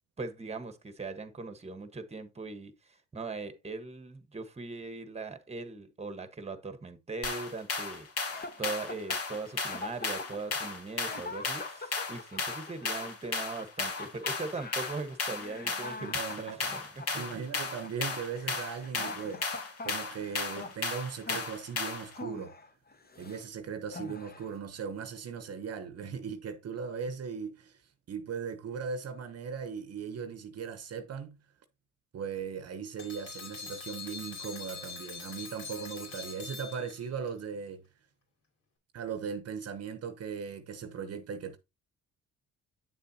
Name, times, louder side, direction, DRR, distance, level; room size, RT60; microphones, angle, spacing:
voice 1, 0.2-8.1 8.6-17.4, right 3 dB, 20° right, 1.3 m, -40 dB
sound 1, 7.2-22.1, left 4 dB, 50° left, 2.5 m, -35 dB
sound 2, 8.3-23.5 23.9-24.6, left 3 dB, 30° left, 1.3 m, -44 dB
voice 2, 16.0-16.6 17.1-22.5 23.2-27.8 28.1-31.4 32.1-37.8 38.9-41.6, right 6 dB, 55° right, 0.9 m, -38 dB
sound 3, 33.0-37.3, left 5 dB, 75° left, 4.7 m, -43 dB
8.8 x 6.8 x 2.8 m
cardioid pair, 90°, 30 cm